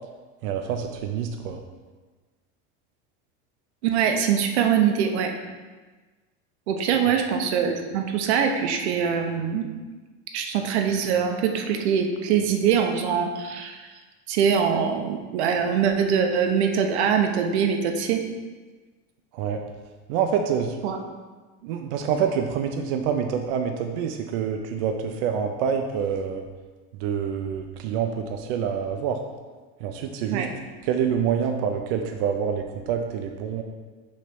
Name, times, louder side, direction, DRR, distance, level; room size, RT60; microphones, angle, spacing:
voice 1, 0.4-1.6 19.3-19.6 20.1-20.8 21.6-26.5 27.0-29.2 29.8-30.5 30.8-33.6, right 7 dB, 60° right, 4 dB, 0.6 m, -26 dB
voice 2, 3.8-5.3 6.7-9.7 10.3-13.9 14.3-18.2 20.8-21.0 30.3-30.5, right 7 dB, 90° right, 4 dB, 0.9 m, -23 dB
6.2 x 3.3 x 5.8 m, 1.3 s
supercardioid pair, 165°, 32 cm